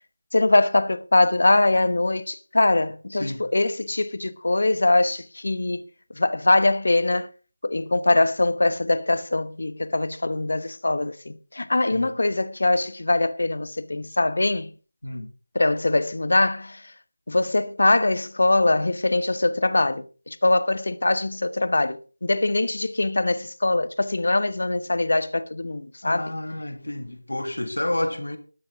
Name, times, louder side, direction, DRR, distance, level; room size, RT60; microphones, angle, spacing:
voice 1, 0.3-5.9 6.2-7.3 7.6-14.7 15.5-16.9 17.3-26.3, left 2 dB, 60° left, 1.0 m, -22 dB
voice 2, 3.1-3.5 11.9-12.1 15.0-15.3 26.0-28.4, left 1 dB, 85° left, 1.8 m, -30 dB
12.5 x 12.5 x 3.6 m
figure-of-eight pair, 170°, 0 cm